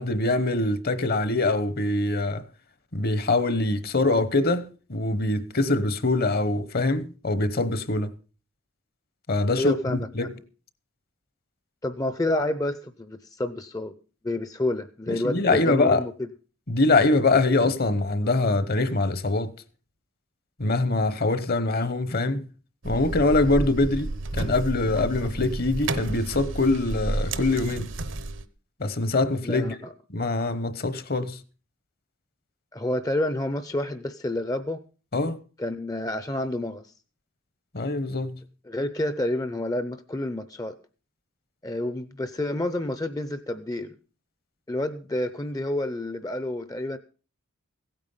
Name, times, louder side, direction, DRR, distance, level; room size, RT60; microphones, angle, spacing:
voice 1, 0.0-2.4 2.9-8.1 9.3-10.3 15.1-16.0 16.7-19.6 20.6-22.5 22.8-27.9 28.8-29.8 30.1-31.4 35.1-35.4 37.7-38.4, left 2 dB, 45° left, 1.0 m, -24 dB
voice 2, 9.6-10.1 11.8-13.9 14.2-16.3 29.4-29.9 32.7-34.8 35.6-36.9 38.7-40.8 41.6-43.9 44.7-47.0, left 1 dB, 15° left, 0.6 m, -29 dB
sound 1, 22.8-28.4, right 2 dB, 60° right, 0.9 m, -31 dB
16.0 x 9.1 x 5.6 m
head